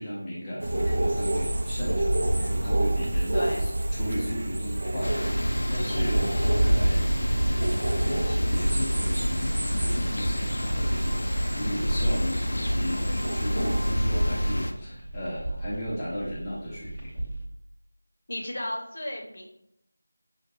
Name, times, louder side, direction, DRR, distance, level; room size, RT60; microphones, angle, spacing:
voice 1, 0.0-7.8 8.0-17.1, equal, 10° left, -10 dB, 0.5 m, -36 dB
sound 1, 0.6-13.9, right 1 dB, 50° right, 0.6 m, -28 dB
sound 2, 2.2-17.4, right 1 dB, 15° right, 1.0 m, -38 dB
sound 3, 5.0-14.7, equal, 70° left, 0.5 m, -28 dB
voice 2, 18.3-19.5, left 1 dB, 45° left, 1 dB, 0.8 m, -33 dB
5.9 x 2.2 x 3.0 m, 0.76 s
figure-of-eight pair, 175°, 0 cm